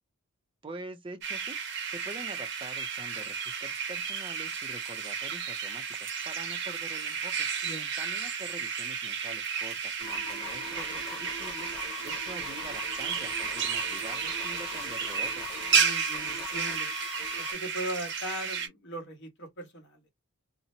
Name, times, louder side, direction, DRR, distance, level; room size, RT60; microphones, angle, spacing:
voice 1, 0.6-1.6 1.8-7.5 8.0-11.7 12.0-15.6, right 2 dB, 25° right, 0.5 m, -45 dB
sound 1, 1.2-18.7, right 6 dB, 50° right, 0.8 m, -33 dB
sound 2, 10.0-17.5, left 4 dB, 25° left, 1.4 m, -41 dB
voice 2, 15.7-16.9 17.4-20.0, right 1 dB, 50° left, 1.2 m, -39 dB
2.8 x 2.1 x 2.6 m
head